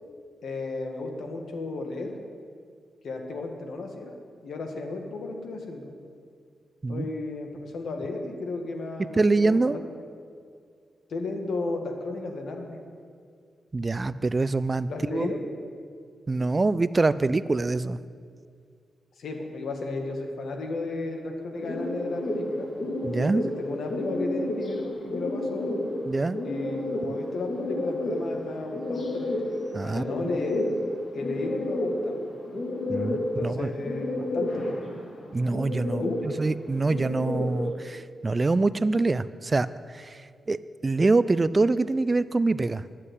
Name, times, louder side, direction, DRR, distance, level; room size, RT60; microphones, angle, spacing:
voice 1, 0.4-2.1 3.0-4.2 4.4-5.9 6.9-9.8 11.1-12.8 14.9-15.4 19.2-22.7 23.6-25.7 26.4-29.3 29.8-30.7 31.1-32.2 33.4-34.8 36.0-36.1, left 3 dB, 75° left, 3 dB, 1.7 m, -34 dB
voice 2, 9.1-9.8 13.7-15.3 16.3-18.0 23.0-23.4 26.1-26.4 29.7-30.3 32.9-33.7 35.3-42.8, right 3 dB, 30° right, 16 dB, 0.4 m, -25 dB
sound 1, 21.6-37.7, left 1 dB, 55° left, 3.2 m, -31 dB
11.5 x 7.5 x 8.3 m, 2.2 s
cardioid pair, 70°, 0 cm